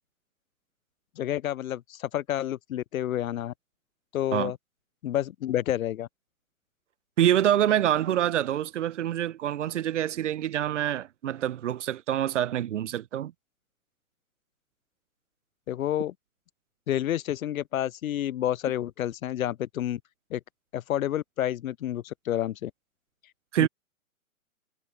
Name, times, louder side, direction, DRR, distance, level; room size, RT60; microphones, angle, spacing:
voice 1, 1.2-3.5 4.1-4.6 5.0-6.1 15.7-16.1 16.9-20.0 20.3-20.4 20.7-22.7 23.6-23.7, left 12 dB, 70° left, 0.6 m, -29 dB
voice 2, 7.2-13.3 23.5-23.7, right 11 dB, 55° right, 0.9 m, -26 dB
hypercardioid pair, 130°, 42 cm